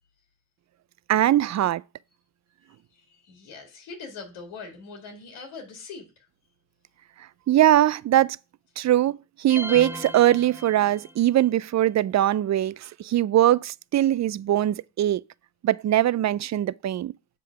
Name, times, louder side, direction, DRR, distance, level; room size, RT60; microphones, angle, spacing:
voice 1, 1.1-1.8 7.5-8.4 8.8-15.2 15.6-17.1, right 12 dB, 40° right, 0.4 m, -21 dB
voice 2, 2.7-6.3, left 4 dB, 85° left, 1.9 m, -42 dB
sound 1, 9.5-11.3, equal, 5° right, 1.1 m, -36 dB
7.5 x 3.7 x 5.6 m
supercardioid pair, 50°, 48 cm